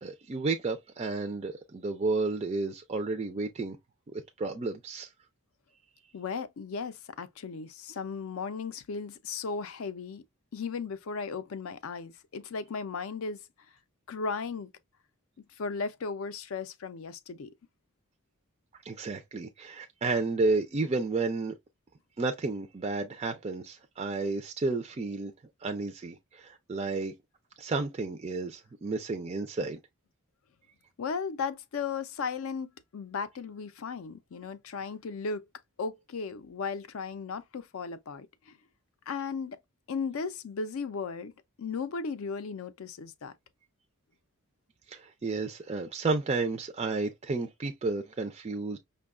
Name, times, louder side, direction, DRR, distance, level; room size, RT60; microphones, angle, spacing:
voice 1, 0.0-3.8 4.1-5.1 18.8-21.5 22.2-25.3 25.6-27.1 27.6-29.8 44.9-48.8, right 3 dB, 25° right, 0.3 m, -32 dB
voice 2, 6.1-10.2 10.5-13.4 14.1-14.7 15.6-17.5 31.0-35.4 35.8-38.6 39.1-39.6 39.9-41.3 41.6-43.3, left 5 dB, 65° left, 0.4 m, -36 dB
5.3 x 2.2 x 2.3 m
head